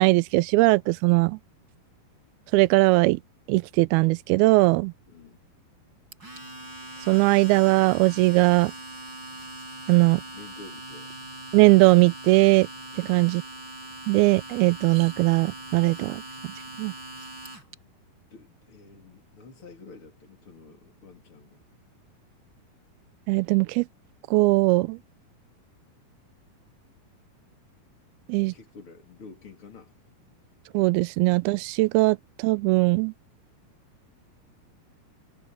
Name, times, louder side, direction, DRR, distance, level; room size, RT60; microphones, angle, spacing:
voice 1, 0.0-1.4 2.5-3.2 3.5-4.9 7.1-8.7 9.9-10.2 11.5-12.7 13.0-13.4 14.1-16.2 16.8-16.9 23.3-23.9 24.3-25.0 28.3-28.5 30.7-33.1, right 22 dB, 85° right, 2.5 m, -20 dB
voice 2, 5.1-5.4 10.3-11.1 12.9-13.3 18.3-21.6 28.5-29.9, left 4 dB, 35° left, 3.5 m, -49 dB
Domestic sounds home sounds, 6.1-17.7, right 2 dB, 30° right, 5.6 m, -41 dB
omnidirectional pair, 4.4 m